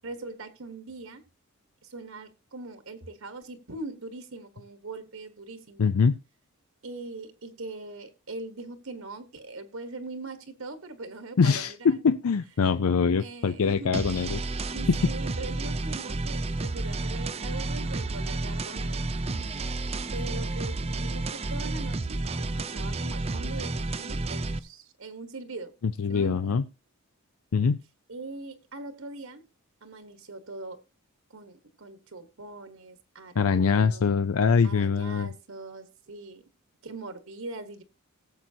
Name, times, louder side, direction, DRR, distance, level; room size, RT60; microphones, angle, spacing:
voice 1, 0.0-1.2 1.8-5.9 6.8-12.0 13.2-13.9 14.7-19.0 20.1-25.7 26.1-26.6 28.1-29.4 29.8-30.8 31.3-34.1 34.6-36.4 36.8-37.8, right 2 dB, 70° right, 10 dB, 1.2 m, -41 dB
voice 2, 5.8-6.2 11.4-14.4 14.9-15.0 25.8-26.6 27.5-27.8 33.4-35.3, left 5 dB, 75° left, 12 dB, 0.5 m, -23 dB
sound 1, 13.9-24.6, right 2 dB, 25° right, 0.5 m, -31 dB
18.0 x 7.6 x 2.8 m, 0.29 s
head